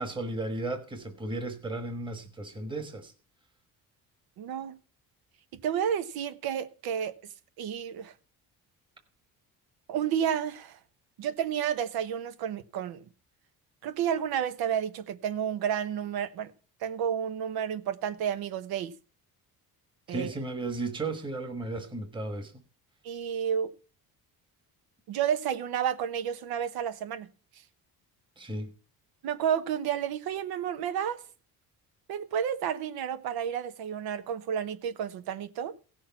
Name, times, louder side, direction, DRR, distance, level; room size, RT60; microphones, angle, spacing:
voice 1, 0.0-3.1 20.1-22.5 28.4-28.7, right 2 dB, 15° right, 1.3 m, -34 dB
voice 2, 4.4-4.7 5.6-7.1 7.6-8.1 9.9-10.8 11.2-13.0 13.8-16.5 16.8-18.9 20.1-20.3 23.0-23.7 25.1-27.3 29.2-31.2 32.1-35.7, right 8 dB, 80° right, 1.1 m, -31 dB
16.0 x 6.6 x 5.8 m
cardioid pair, 135°, 37 cm